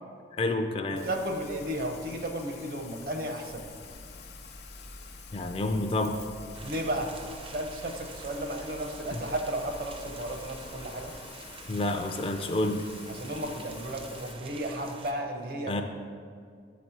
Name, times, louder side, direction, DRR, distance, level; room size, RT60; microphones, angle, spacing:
voice 1, 0.3-1.0 5.3-6.2 9.1-9.2 11.7-12.8 15.7-15.8, left 2 dB, 30° left, 6 dB, 0.3 m, -29 dB
Rain, 0.9-14.3, left 5 dB, 65° left, 0.7 m, -48 dB
voice 2, 0.9-3.7 6.6-7.1 7.5-11.1 13.1-15.7, right 1 dB, 55° right, 4 dB, 0.8 m, -34 dB
sound 1, 3.5-10.9, left 1 dB, 90° right, 1.5 m, -50 dB
sound 2, 6.5-15.1, right 3 dB, 30° right, 0.4 m, -47 dB
7.1 x 4.2 x 5.9 m, 2.2 s
head